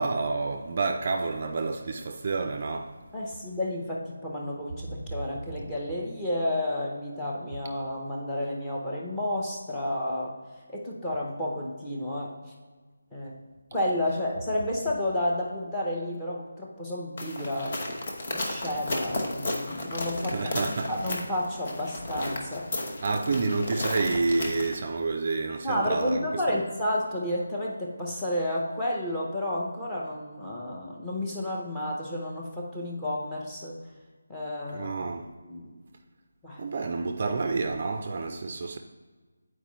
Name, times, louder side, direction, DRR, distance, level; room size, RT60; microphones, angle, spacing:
voice 1, 0.0-2.9 20.3-20.9 23.0-26.6 34.7-35.3 36.6-38.8, right 3 dB, 35° right, 0.3 m, -29 dB
voice 2, 3.1-10.3 10.7-12.3 13.1-13.3 13.7-17.8 18.3-20.5 20.9-22.7 25.6-33.8 34.3-35.1 35.4-35.8 36.4-36.7, left 1 dB, 5° left, 0.6 m, -31 dB
sound 1, 17.2-24.8, left 1 dB, 35° left, 0.8 m, -34 dB
8.2 x 4.5 x 3.0 m
figure-of-eight pair, 175°, 0 cm